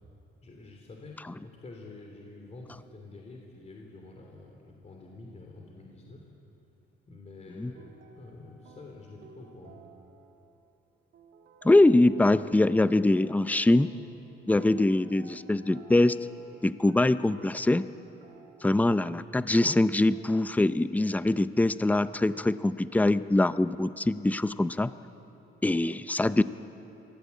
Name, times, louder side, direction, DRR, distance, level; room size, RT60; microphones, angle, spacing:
voice 1, 0.4-1.2 1.4-6.3 7.1-9.8, left 3 dB, 35° left, 0 dB, 3.2 m, -48 dB
sound 1, 7.7-10.7 11.1-14.1 14.5-19.4 20.1-20.5, right 4 dB, 80° right, 2.4 m, -54 dB
voice 2, 11.6-13.9 14.5-16.2 16.6-17.9 18.6-24.9 25.6-26.4, left 2 dB, 10° left, 14 dB, 0.6 m, -23 dB
23.5 x 16.0 x 8.4 m, 3.0 s
cardioid pair, 90°, 20 cm